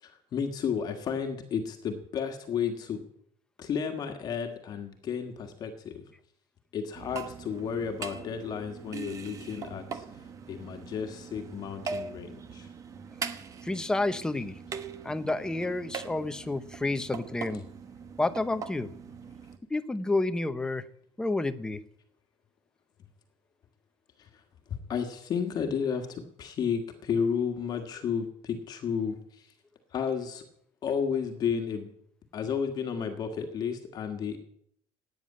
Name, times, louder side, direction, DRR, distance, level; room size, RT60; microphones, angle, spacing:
voice 1, 0.0-3.0 3.6-6.0 6.7-10.0 10.5-12.7 17.5-17.6 24.2-24.3 24.7-29.5 29.9-30.4 30.8-31.9 32.3-34.4, left 7 dB, 35° left, 5 dB, 1.6 m, -32 dB
sound 1, 6.9-19.6, right 5 dB, 25° right, 1.0 m, -41 dB
voice 2, 13.6-14.6 15.0-17.6 18.2-18.9 19.7-20.8 21.2-21.8, left 2 dB, 5° left, 10 dB, 0.7 m, -30 dB
16.5 x 9.4 x 8.6 m, 0.69 s
cardioid pair, 175°, 12 cm